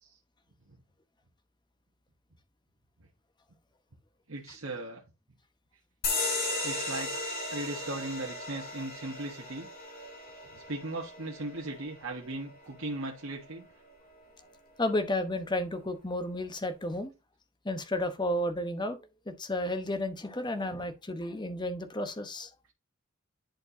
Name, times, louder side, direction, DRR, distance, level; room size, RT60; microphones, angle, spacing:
voice 1, 4.3-5.0 6.6-7.1 7.5-9.7 10.5-13.7, right 2 dB, 70° right, 1.4 m, -38 dB
sound 1, 6.0-13.1, left 2 dB, 45° left, 3.2 m, -36 dB
voice 2, 14.8-17.1 17.6-19.0 19.3-22.5, left 1 dB, 20° left, 0.9 m, -32 dB
10.5 x 4.5 x 2.7 m
head